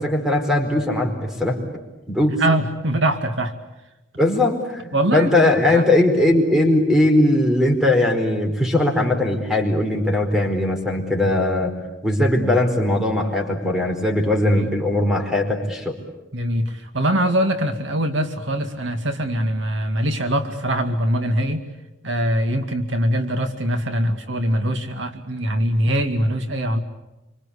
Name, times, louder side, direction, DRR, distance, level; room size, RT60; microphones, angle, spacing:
voice 1, 0.0-1.6 2.1-2.4 4.2-11.8 12.0-16.0, left 1 dB, ahead, 4 dB, 4.7 m, -19 dB
voice 2, 2.4-3.5 4.9-5.8 14.6-14.7 16.3-21.6 22.0-26.8, right 1 dB, 70° right, 7 dB, 2.2 m, -22 dB
27.0 x 25.5 x 8.5 m, 0.97 s
head